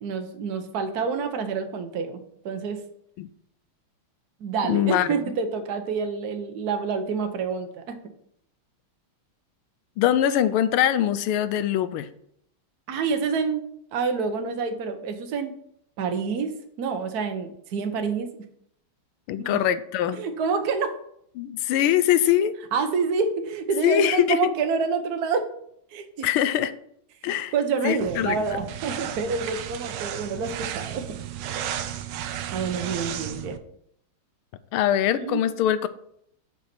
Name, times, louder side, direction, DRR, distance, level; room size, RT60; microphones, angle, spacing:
voice 1, 0.0-2.8 4.4-8.0 12.9-13.6 13.9-15.5 16.0-16.5 16.8-18.3 19.4-19.6 20.1-20.9 22.7-25.5 25.9-26.3 27.5-31.0 32.5-33.6 35.1-35.4, right 5 dB, 55° right, 7 dB, 1.3 m, -27 dB
voice 2, 4.7-5.1 10.0-12.1 19.3-20.2 21.4-22.5 23.8-24.5 26.2-26.7 27.2-27.5 27.8-28.6 34.7-35.9, left 11 dB, 80° left, 13 dB, 1.4 m, -22 dB
sound 1, 28.0-33.6, right 10 dB, 75° right, 1.5 m, -34 dB
8.0 x 5.5 x 6.0 m, 0.69 s
omnidirectional pair, 2.4 m